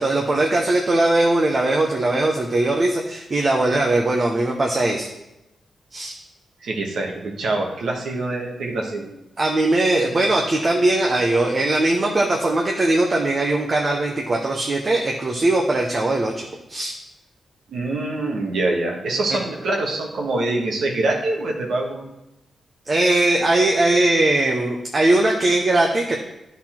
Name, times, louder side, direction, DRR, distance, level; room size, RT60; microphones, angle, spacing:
voice 1, 0.0-5.1 5.9-6.1 9.4-16.9 19.3-19.4 22.9-26.2, right 2 dB, 40° right, 0 dB, 0.8 m, -20 dB
voice 2, 6.6-9.1 17.7-22.1, right 2 dB, 85° right, 0 dB, 1.3 m, -25 dB
10.0 x 4.1 x 4.4 m, 0.92 s
cardioid pair, 95°, 0 cm